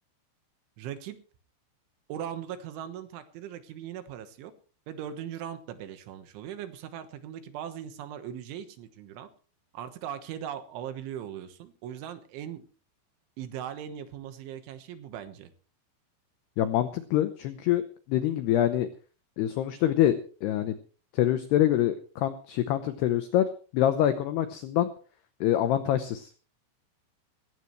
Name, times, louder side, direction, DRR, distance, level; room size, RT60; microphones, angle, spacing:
voice 1, 0.8-1.2 2.1-4.5 4.9-9.3 9.7-12.7 13.4-15.5, right 9 dB, 75° right, 10 dB, 3.5 m, -39 dB
voice 2, 16.6-17.8 18.1-18.9 19.4-20.7 21.1-23.5 23.7-24.9 25.4-26.3, left 12 dB, 85° left, 10 dB, 2.3 m, -25 dB
18.5 x 17.0 x 3.2 m, 0.38 s
omnidirectional pair, 5.9 m